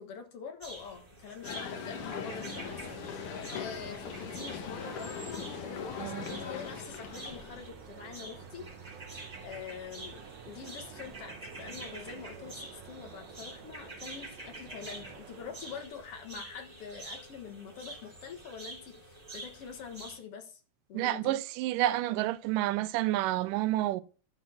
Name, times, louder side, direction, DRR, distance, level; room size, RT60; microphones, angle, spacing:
voice 1, 0.0-20.6 20.9-21.3, left 6 dB, 55° left, 1.9 m, -45 dB
sound 1, 0.6-20.2, right 2 dB, 15° right, 2.0 m, -48 dB
sound 2, 1.4-7.6, left 7 dB, 75° left, 2.7 m, -40 dB
sound 3, 1.4-15.9, right 7 dB, 65° right, 1.9 m, -50 dB
voice 2, 20.9-24.0, right 15 dB, 90° right, 2.1 m, -29 dB
11.5 x 4.2 x 5.7 m
omnidirectional pair, 3.7 m